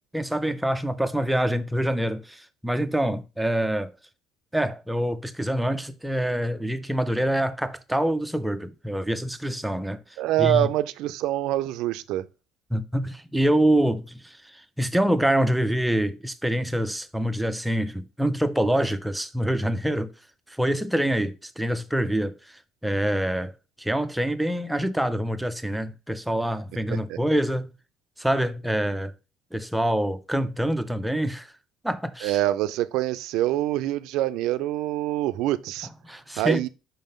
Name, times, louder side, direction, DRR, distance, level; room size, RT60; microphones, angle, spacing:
voice 1, 0.1-3.9 4.5-10.0 10.4-10.7 12.7-20.1 20.5-27.7 28.2-29.1 29.5-31.5 31.8-32.4 36.0-36.7, right 1 dB, 5° right, 0.5 m, -26 dB
voice 2, 10.2-12.3 27.1-27.2 32.2-35.9 36.4-36.7, right 14 dB, 80° right, 0.4 m, -25 dB
5.6 x 3.6 x 5.4 m
cardioid pair, 155°, 0 cm